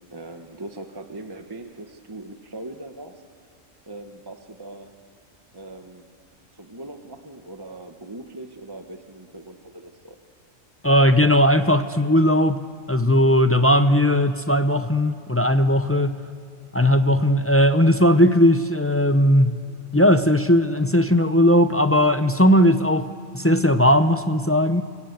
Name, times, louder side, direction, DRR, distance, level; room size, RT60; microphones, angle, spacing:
voice 1, 0.1-3.2 3.9-4.9 5.5-6.0 6.5-10.2, right 2 dB, 20° right, 5 dB, 1.1 m, -40 dB
voice 2, 10.8-12.6 12.9-16.2 16.7-19.6 19.9-24.8, equal, 15° left, 9 dB, 0.5 m, -18 dB
27.5 x 26.5 x 8.1 m, 2.3 s
omnidirectional pair, 1.3 m